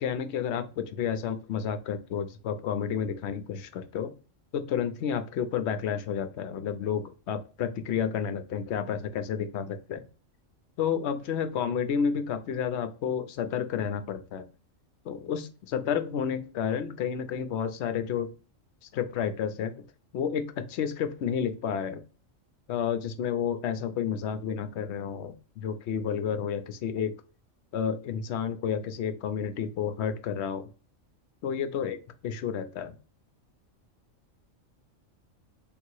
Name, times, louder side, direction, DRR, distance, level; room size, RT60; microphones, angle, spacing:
voice 1, 0.0-4.1 4.5-10.0 10.8-14.5 15.0-18.3 18.8-19.7 20.1-22.0 22.7-27.1 27.7-30.7 31.4-32.0 32.2-33.0, left 7 dB, 65° left, 9 dB, 0.8 m, -31 dB
3.5 x 2.8 x 4.5 m, 0.35 s
omnidirectional pair, 1.4 m